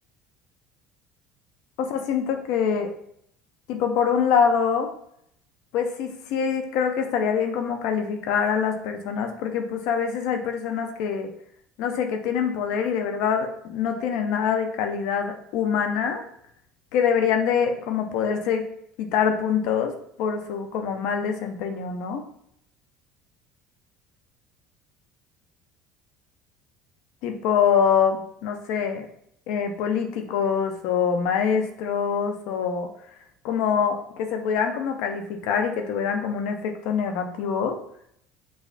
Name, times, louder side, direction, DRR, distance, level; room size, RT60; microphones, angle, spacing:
voice 1, 1.8-2.9 3.7-4.9 5.7-11.3 11.8-16.2 16.9-18.7 19.0-22.2 27.2-29.1 29.5-32.9 33.4-37.8, left 7 dB, 75° left, 5 dB, 0.5 m, -25 dB
5.0 x 2.4 x 2.4 m, 0.71 s
supercardioid pair, 85°, 0 cm